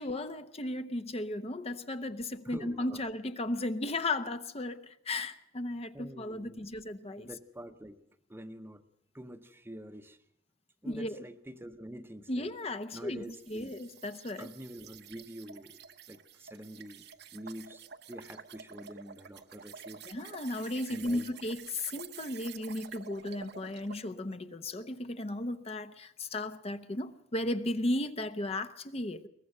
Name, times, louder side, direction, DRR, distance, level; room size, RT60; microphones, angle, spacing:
voice 1, 0.0-7.3 10.9-11.2 12.3-14.5 20.1-29.3, left 1 dB, 35° left, 0.8 m, -35 dB
voice 2, 2.4-3.0 5.9-6.7 7.2-8.0 8.3-8.8 9.1-10.2 10.8-12.5 12.9-13.7 14.4-15.8 16.1-17.0 17.3-20.1 20.9-21.3, equal, 10° right, 0.9 m, -46 dB
sound 1, 13.3-24.1, right 7 dB, 60° right, 1.1 m, -50 dB
22.0 x 19.5 x 6.6 m
head